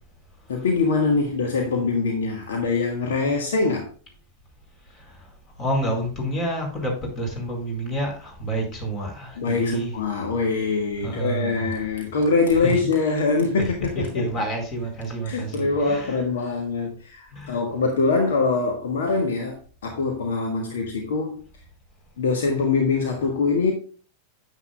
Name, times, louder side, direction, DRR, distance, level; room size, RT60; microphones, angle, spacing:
voice 1, 0.5-3.9 9.4-14.2 15.2-21.5 22.2-23.7, left 4 dB, 60° left, 1.6 m, -23 dB
voice 2, 5.6-10.0 11.0-11.9 12.5-12.9 13.6-16.2 17.3-17.6, right 1 dB, 30° left, 4.8 m, -29 dB
9.8 x 9.1 x 2.3 m
figure-of-eight pair, 90°, 0 cm